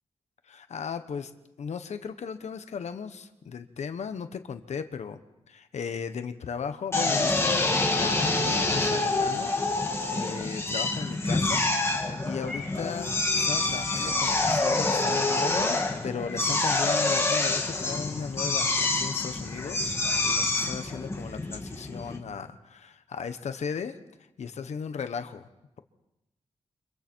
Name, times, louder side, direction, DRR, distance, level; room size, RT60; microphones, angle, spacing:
voice 1, 0.5-1.3 1.6-5.2 5.5-9.5 10.1-11.6 12.0-24.0 24.4-25.5, left 6 dB, 85° left, 9 dB, 1.2 m, -36 dB
Drill, 6.9-22.2, left 2 dB, 25° left, 2.4 m, -27 dB
Purr / Meow, 12.4-14.6, left 2 dB, 5° right, 6.4 m, -45 dB
30.0 x 25.0 x 4.6 m, 0.91 s
wide cardioid pair, 180°, 11 cm